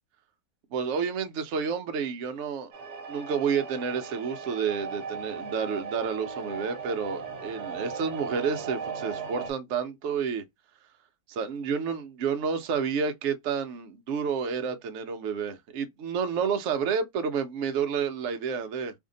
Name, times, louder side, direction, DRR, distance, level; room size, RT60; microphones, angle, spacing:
voice 1, 0.7-2.7 3.1-10.4 11.3-18.9, right 6 dB, 80° right, 0.6 m, -30 dB
sound 1, 2.7-9.5, right 5 dB, 55° right, 0.9 m, -37 dB
2.7 x 2.5 x 3.7 m
omnidirectional pair, 1.9 m